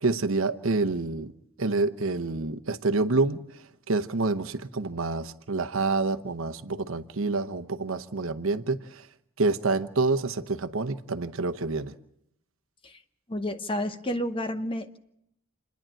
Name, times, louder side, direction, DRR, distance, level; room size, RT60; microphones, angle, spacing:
voice 1, 0.0-1.3 1.6-3.4 3.9-9.0 9.4-11.9, right 3 dB, 70° right, 10 dB, 0.9 m, -27 dB
voice 2, 13.3-15.0, left 1 dB, 25° left, 9 dB, 0.9 m, -30 dB
28.5 x 10.5 x 9.0 m, 0.80 s
head